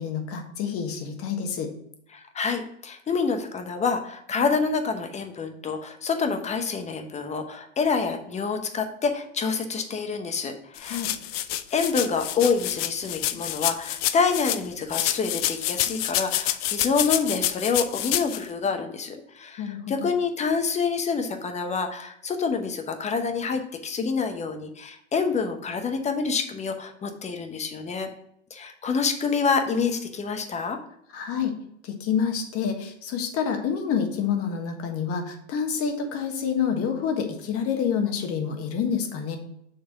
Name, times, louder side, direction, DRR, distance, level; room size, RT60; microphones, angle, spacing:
voice 1, 0.0-1.7 10.8-11.1 19.6-20.1 31.1-31.5 31.8-39.4, left 7 dB, 40° left, 5 dB, 1.4 m, -28 dB
voice 2, 2.1-11.0 11.7-28.1 28.5-30.8, left 5 dB, 20° left, 6 dB, 0.9 m, -27 dB
sound 1, 10.8-14.6 14.9-18.4, left 13 dB, 55° left, 0.6 m, -28 dB
6.7 x 3.3 x 5.8 m, 0.74 s
hypercardioid pair, 110°, 36 cm